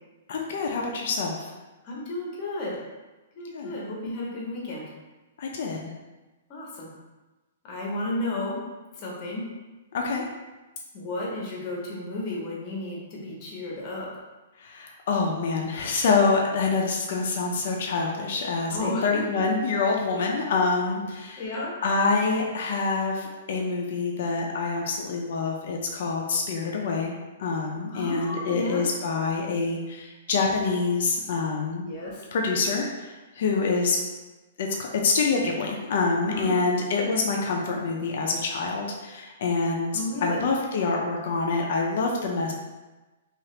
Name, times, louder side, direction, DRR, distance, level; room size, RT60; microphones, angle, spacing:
voice 1, 0.3-1.5 3.5-3.7 5.4-5.9 9.9-10.2 14.6-21.5 21.8-27.1 27.4-31.9 32.3-34.0 34.6-42.5, left 4 dB, 55° left, 0 dB, 0.4 m, -26 dB
voice 2, 1.8-2.8 3.4-4.9 6.5-6.9 7.6-8.6 9.0-9.4 10.9-14.1 18.7-19.4 21.4-21.7 27.9-28.9 31.8-32.2 36.2-36.5 39.9-40.4, left 2 dB, 30° left, -4 dB, 0.7 m, -32 dB
2.8 x 2.4 x 3.1 m, 1.2 s
hypercardioid pair, 170°, 0 cm